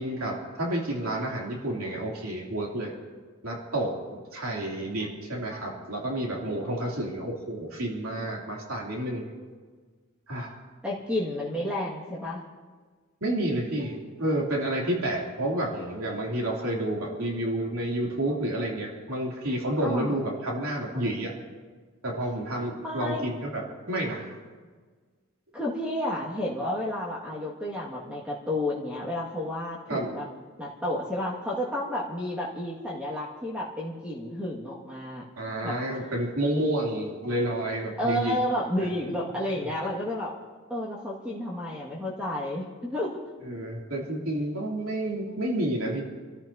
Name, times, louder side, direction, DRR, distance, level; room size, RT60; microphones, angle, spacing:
voice 1, 0.0-2.9 3.4-9.2 10.3-10.5 13.2-21.3 22.0-23.6 23.9-24.4 29.9-30.1 35.4-38.4 43.4-46.0, right 1 dB, 85° right, -3 dB, 3.1 m, -30 dB
voice 2, 10.8-12.4 19.8-20.2 22.8-23.2 25.5-30.3 30.6-35.3 35.6-35.7 38.0-40.3 40.7-43.2, left 1 dB, 5° right, -5 dB, 2.0 m, -31 dB
28.0 x 14.0 x 2.9 m, 1.5 s
head